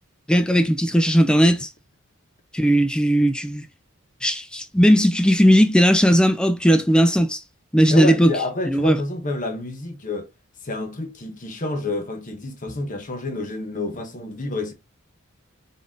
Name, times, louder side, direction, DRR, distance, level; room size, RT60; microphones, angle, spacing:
voice 1, 0.3-1.7 2.5-3.6 4.2-7.4 7.7-8.3 8.7-9.0, equal, 5° left, 0.3 m, -17 dB
voice 2, 7.8-10.3 10.6-14.7, left 2 dB, 35° left, 1.0 m, -29 dB
4.0 x 3.7 x 3.6 m
head